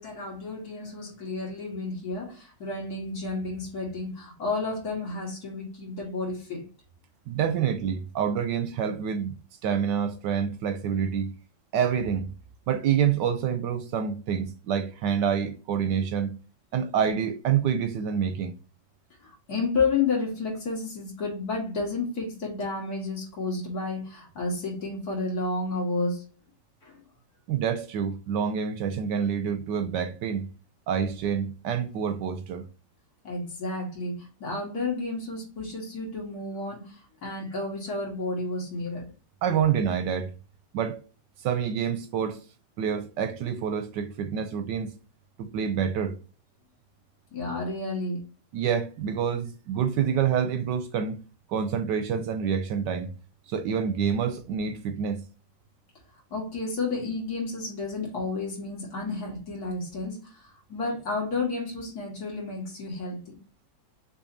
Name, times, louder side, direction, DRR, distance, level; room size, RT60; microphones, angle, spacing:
voice 1, 0.0-6.6 19.2-26.2 26.8-27.0 33.2-39.0 47.3-48.2 56.3-60.4 60.7-63.4, left 3 dB, 55° left, 2.2 m, -31 dB
voice 2, 7.3-9.4 9.6-11.3 11.7-12.3 12.7-16.4 16.7-18.5 27.5-30.5 30.9-32.7 39.4-40.3 40.7-41.0 41.4-42.4 42.8-45.0 45.4-46.2 48.5-51.2 51.5-53.1 53.5-55.3, right 7 dB, 75° right, 1.1 m, -27 dB
6.3 x 3.0 x 2.6 m
omnidirectional pair, 2.1 m